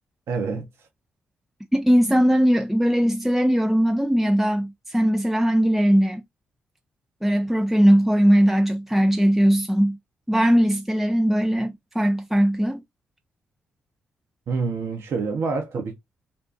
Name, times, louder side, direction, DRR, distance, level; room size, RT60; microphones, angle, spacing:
voice 1, 0.3-0.7 14.5-15.9, right 4 dB, 65° right, 0.8 m, -27 dB
voice 2, 1.7-6.2 7.2-10.0 10.3-12.8, equal, 5° right, 0.5 m, -19 dB
2.6 x 2.3 x 3.5 m
hypercardioid pair, 40°, 5 cm